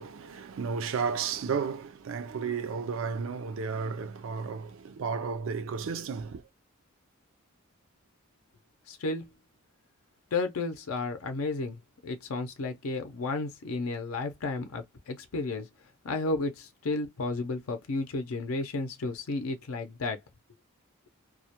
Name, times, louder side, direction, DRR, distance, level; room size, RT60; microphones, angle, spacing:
voice 1, 0.0-6.4, right 5 dB, 65° right, 0.4 m, -33 dB
voice 2, 8.9-9.3 10.3-15.7 16.0-20.2, left 3 dB, 80° left, 0.5 m, -32 dB
2.3 x 2.1 x 2.7 m
head